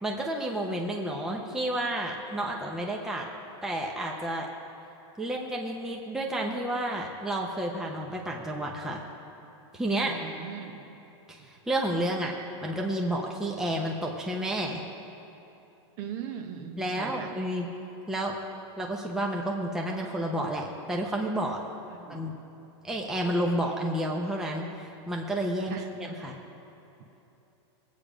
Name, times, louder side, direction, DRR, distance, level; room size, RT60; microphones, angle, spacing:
voice 1, 0.0-3.3 3.6-4.5 5.2-9.0 9.7-10.1 11.3-12.3 12.6-14.8 16.8-17.7 18.1-18.4 18.8-21.6 22.1-22.3 22.8-26.4, right 1 dB, 5° right, -1 dB, 0.8 m, -30 dB
voice 2, 10.0-10.8 16.0-17.3 22.0-22.4 25.7-25.9, right 8 dB, 40° right, 6 dB, 1.1 m, -39 dB
21.0 x 8.6 x 5.1 m, 3.0 s
supercardioid pair, 165°, 15 cm